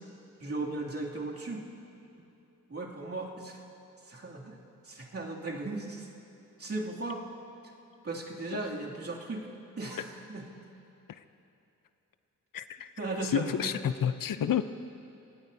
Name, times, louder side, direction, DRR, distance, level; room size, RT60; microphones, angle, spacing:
voice 1, 0.4-1.7 2.7-3.6 4.1-4.6 4.8-6.1 6.6-7.2 8.0-9.5 9.8-10.4 13.0-13.7, right 2 dB, 45° right, -3 dB, 2.8 m, -36 dB
voice 2, 12.5-12.9 13.2-14.6, left 9 dB, 80° left, 11 dB, 0.7 m, -29 dB
26.0 x 17.5 x 2.8 m, 2.8 s
cardioid pair, 60°, 32 cm